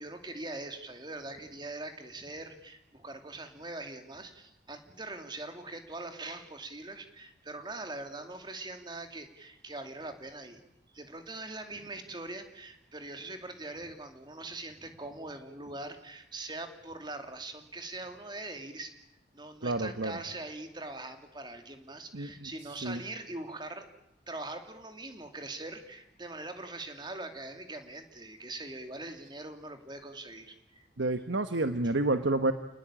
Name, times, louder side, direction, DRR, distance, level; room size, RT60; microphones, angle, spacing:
voice 1, 0.0-10.6 10.9-19.0 19.3-23.9 24.3-30.9, right 2 dB, 25° right, 6 dB, 2.6 m, -42 dB
voice 2, 19.6-20.2 22.1-22.5 22.8-23.0 31.0-32.5, right 2 dB, 80° right, 9 dB, 1.2 m, -29 dB
29.0 x 20.0 x 9.0 m, 0.86 s
head